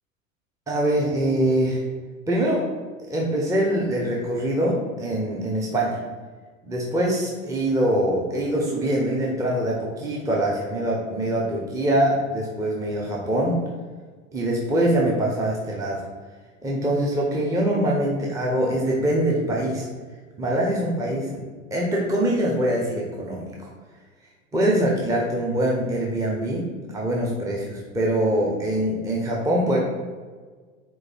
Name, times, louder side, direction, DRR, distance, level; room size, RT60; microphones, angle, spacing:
voice 1, 0.7-1.8 2.3-2.6 3.1-6.0 6.6-13.6 14.3-16.0 16.6-19.9 20.4-21.4 21.7-23.7 24.5-26.7 26.9-29.8, right 1 dB, 10° right, -3 dB, 0.7 m, -23 dB
4.6 x 2.7 x 4.2 m, 1.5 s
figure-of-eight pair, 80°, 40 cm